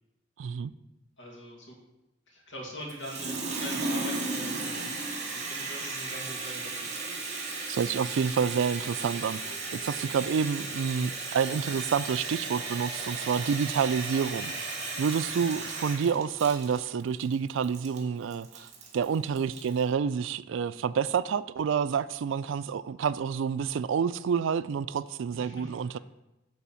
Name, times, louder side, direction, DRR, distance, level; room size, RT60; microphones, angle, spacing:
voice 1, 0.4-0.7 7.7-14.5 15.0-26.0, right 6 dB, 70° right, 0.3 m, -28 dB
voice 2, 1.2-1.8 2.3-4.9 5.3-6.9 15.2-15.4 22.5-22.6 25.3-26.0, equal, 65° left, 2.4 m, -43 dB
Water tap faucet, 2.9-19.8, right 3 dB, 35° right, 1.7 m, -35 dB
8.5 x 4.1 x 7.0 m
head